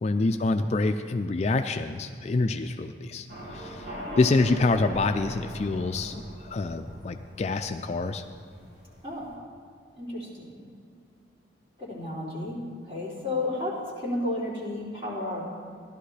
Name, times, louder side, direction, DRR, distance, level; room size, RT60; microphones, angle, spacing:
voice 1, 0.0-3.3 3.5-3.9 4.2-8.2, left 3 dB, 35° left, 7 dB, 0.3 m, -26 dB
sound 1, 3.3-9.4, equal, 55° right, 2.3 m, -41 dB
voice 2, 10.0-10.6 11.8-12.6 12.9-15.5, left 2 dB, 30° right, -7 dB, 3.1 m, -32 dB
15.5 x 11.0 x 3.3 m, 2.3 s
head